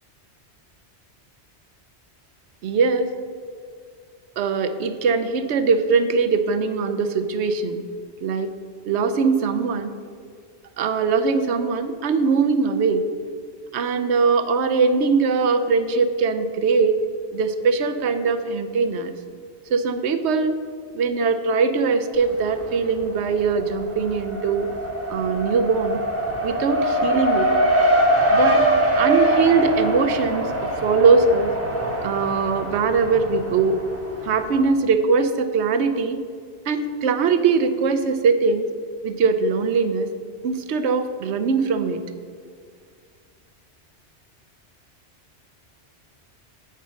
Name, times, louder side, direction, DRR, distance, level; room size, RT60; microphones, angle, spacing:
voice 1, 2.6-3.1 4.4-7.8 8.2-8.5 8.9-9.9 10.8-13.0 13.7-17.0 17.3-19.1 19.7-20.6 20.9-24.7 25.1-26.0 26.4-27.5 28.3-28.7 29.0-30.5 30.8-31.5 32.0-33.8 34.2-36.2 36.7-38.6 39.0-40.1 40.4-42.0, right 5 dB, 80° right, 9 dB, 0.9 m, -21 dB
Race car auto racing, 22.1-22.9 23.2-34.6, right 1 dB, 15° right, 1.0 m, -23 dB
8.3 x 5.6 x 6.2 m, 2.1 s
omnidirectional pair, 1.1 m